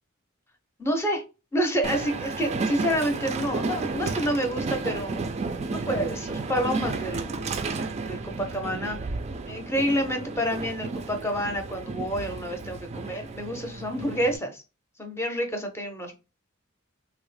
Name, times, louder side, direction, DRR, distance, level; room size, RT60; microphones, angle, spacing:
voice 1, 0.8-1.2 1.5-5.2 5.7-7.5 8.0-9.0 9.5-14.6 15.0-16.1, equal, 15° left, 4 dB, 0.6 m, -28 dB
Train, 1.8-14.4, right 3 dB, 30° right, 0.3 m, -32 dB
3.5 x 2.0 x 3.2 m, 0.29 s
head